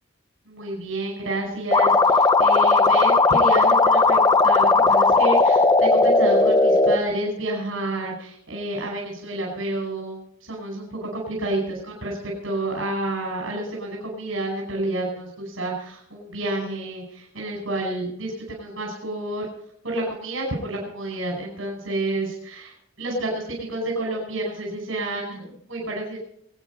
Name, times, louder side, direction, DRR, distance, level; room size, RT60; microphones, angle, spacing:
voice 1, 0.5-19.5 19.8-26.2, right 2 dB, 85° right, -1 dB, 5.3 m, -29 dB
sound 1, 1.7-7.0, left 3 dB, 20° left, 0.7 m, -17 dB
23.0 x 9.3 x 5.3 m, 0.70 s
head